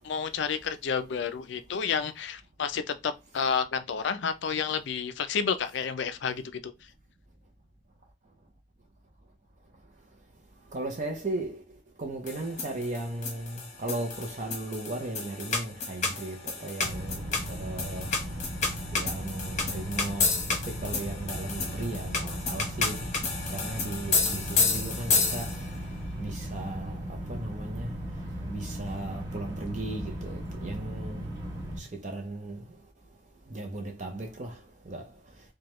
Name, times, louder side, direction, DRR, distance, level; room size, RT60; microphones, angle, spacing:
voice 1, 0.0-6.7, left 6 dB, 65° left, 0.4 m, -30 dB
voice 2, 10.7-11.6 12.0-18.1 18.9-20.3 20.6-23.1 23.5-25.5 26.2-27.9 28.5-31.3 31.8-32.6 33.5-34.6 34.9-35.0, right 2 dB, 35° right, 0.6 m, -36 dB
sound 1, 12.3-25.8, left 4 dB, 35° left, 0.9 m, -31 dB
sound 2, 16.8-31.8, equal, 20° right, 1.4 m, -37 dB
4.7 x 2.2 x 3.0 m
head